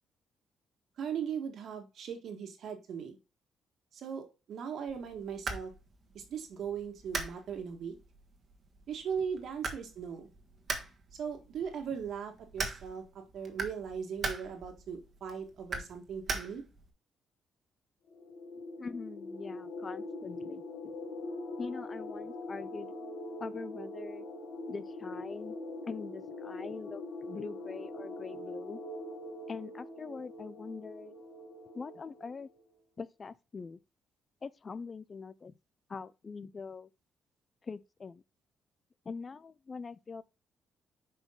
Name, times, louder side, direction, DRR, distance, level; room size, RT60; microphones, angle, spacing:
voice 1, 1.0-3.2 3.9-5.7 6.1-7.9 8.9-10.3 11.1-16.6, right 7 dB, 65° right, 1.6 m, -39 dB
sound 1, 4.9-16.9, right 3 dB, 40° right, 1.4 m, -42 dB
sound 2, 18.1-32.4, left 2 dB, 90° left, 1.8 m, -43 dB
voice 2, 18.8-20.6 21.6-22.9 23.4-24.2 24.7-25.6 25.8-28.8 29.5-31.1 31.7-32.5 33.0-33.8 34.4-35.5 35.9-36.9 37.6-38.2 39.1-40.2, left 5 dB, 35° left, 0.4 m, -43 dB
5.7 x 5.0 x 3.8 m
cardioid pair, 90°, 0 cm